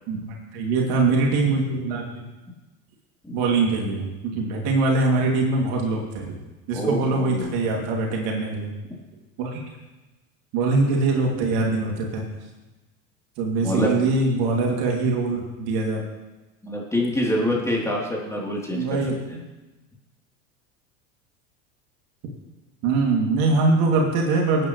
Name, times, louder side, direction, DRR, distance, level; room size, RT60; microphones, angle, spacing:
voice 1, 0.1-2.2 3.3-6.3 6.7-8.7 9.4-9.6 10.5-12.2 13.4-16.0 18.7-19.2 22.8-24.7, right 3 dB, 55° right, -1 dB, 2.9 m, -23 dB
voice 2, 6.7-7.6 13.6-13.9 16.6-19.0 19.3-19.4, left 1 dB, 5° left, -3 dB, 3.4 m, -26 dB
20.0 x 9.3 x 3.3 m, 1.1 s
hypercardioid pair, 80°, 45 cm